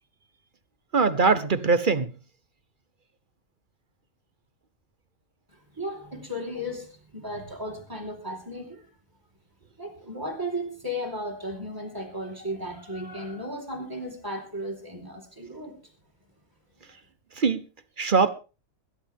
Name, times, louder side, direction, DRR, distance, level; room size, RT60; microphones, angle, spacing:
voice 1, 0.9-2.1 17.4-17.6 18.0-18.3, right 4 dB, 40° right, 1.0 m, -21 dB
voice 2, 5.8-8.8 9.8-15.7, equal, 15° right, 4.4 m, -35 dB
21.5 x 11.5 x 3.6 m
omnidirectional pair, 1.5 m